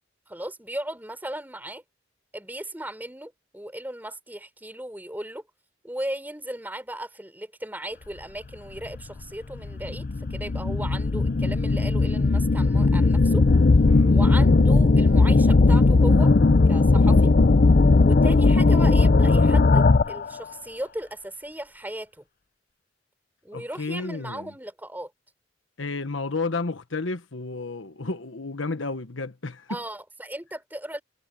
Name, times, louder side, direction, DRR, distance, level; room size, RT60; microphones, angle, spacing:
voice 1, 0.3-1.8 2.3-5.4 5.8-13.5 14.1-16.3 16.7-17.3 18.0-22.2 23.4-25.1 29.7-31.0, right 1 dB, 10° right, 5.2 m, -36 dB
sound 1, 8.9-9.0 9.6-20.3, left 3 dB, 50° left, 0.6 m, -18 dB
voice 2, 13.8-14.2 23.5-24.5 25.8-29.8, left 3 dB, 85° left, 1.3 m, -32 dB
head